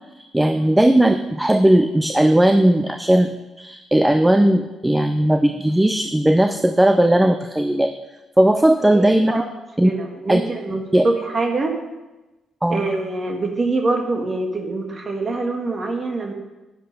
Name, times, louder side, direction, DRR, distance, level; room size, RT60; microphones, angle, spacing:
voice 1, 0.3-7.9 8.4-9.3 9.8-9.9 10.3-10.4 10.9-11.1 12.6-12.8, right 1 dB, 10° right, 9 dB, 0.6 m, -17 dB
voice 2, 8.9-9.5 9.8-11.7 12.7-16.3, right 3 dB, 35° right, 3 dB, 1.7 m, -24 dB
10.5 x 10.0 x 5.4 m, 1.1 s
cardioid pair, 90°, 0 cm